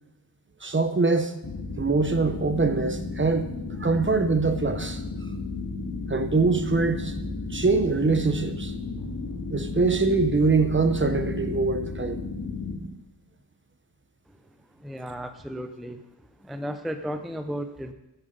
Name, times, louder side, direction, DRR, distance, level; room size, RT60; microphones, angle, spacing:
voice 1, 0.6-1.3 1.8-5.0 6.1-7.2 7.5-8.7 9.5-12.2, right 3 dB, 30° right, 0.8 m, -23 dB
sound 1, 1.4-12.8, left 3 dB, 55° left, 2.5 m, -33 dB
voice 2, 14.8-16.0 16.4-17.9, equal, ahead, 0.5 m, -34 dB
13.0 x 10.0 x 5.3 m
wide cardioid pair, 145°, 41 cm